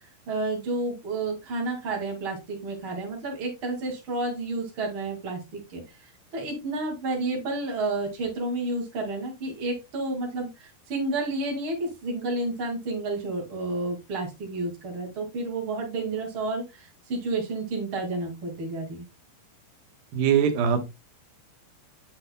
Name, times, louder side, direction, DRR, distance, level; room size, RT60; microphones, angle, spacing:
voice 1, 0.3-5.8 6.3-19.0, right 2 dB, 35° right, 0 dB, 2.6 m, -30 dB
voice 2, 20.1-20.8, right 7 dB, 70° right, 7 dB, 2.8 m, -21 dB
8.8 x 7.8 x 2.2 m, 0.23 s
omnidirectional pair, 4.5 m